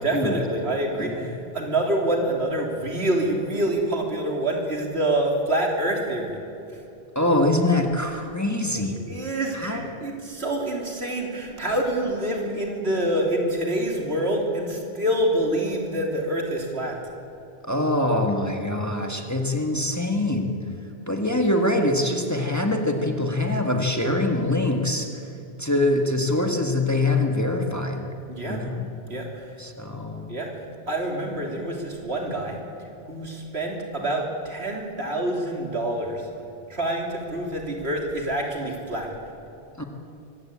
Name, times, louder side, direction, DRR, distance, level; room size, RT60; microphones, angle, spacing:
voice 1, 0.0-6.4 8.8-17.0 28.3-28.6 29.1-29.5 30.3-30.5 30.9-32.6 33.1-36.2 36.7-39.1, right 1 dB, 75° right, 1 dB, 3.5 m, -26 dB
voice 2, 7.1-9.0 9.5-9.8 17.7-20.5 21.1-25.1 25.6-28.1 28.4-28.9 29.6-30.3 39.8-39.9, left 1 dB, 15° left, 3 dB, 1.7 m, -24 dB
24.0 x 16.5 x 8.5 m, 2.7 s
omnidirectional pair, 1.1 m